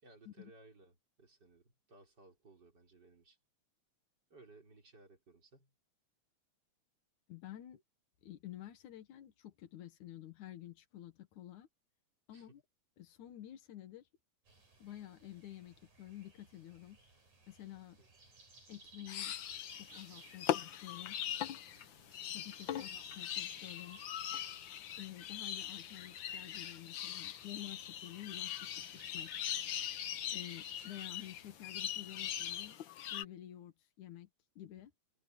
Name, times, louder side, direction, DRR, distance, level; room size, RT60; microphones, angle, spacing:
voice 1, 0.0-3.4 4.3-5.7 12.3-12.6 18.0-18.1, right 2 dB, 35° right, 4.9 m, -61 dB
voice 2, 7.3-7.8 8.2-11.7 12.3-12.6 13.0-14.1 14.8-17.0 17.5-18.0 18.7-19.3 19.7-21.2 22.3-24.0 25.0-29.3 30.3-32.8 33.1-34.3 34.6-34.9, left 13 dB, 90° left, 2.9 m, -50 dB
sound 1, 14.5-32.7, right 2 dB, 85° right, 9.5 m, -60 dB
sound 2, 19.1-33.2, left 11 dB, 70° left, 1.1 m, -41 dB
omnidirectional pair, 3.3 m